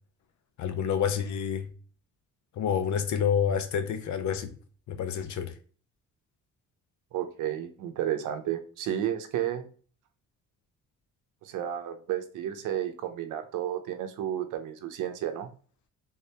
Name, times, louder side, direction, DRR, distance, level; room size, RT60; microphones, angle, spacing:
voice 1, 0.6-1.7 2.5-4.6 4.9-5.5, left 8 dB, 70° left, 0.7 m, -28 dB
voice 2, 7.1-9.7 11.4-15.5, right 11 dB, 85° right, 0.6 m, -32 dB
3.5 x 3.3 x 2.8 m
cardioid pair, 90°, 30 cm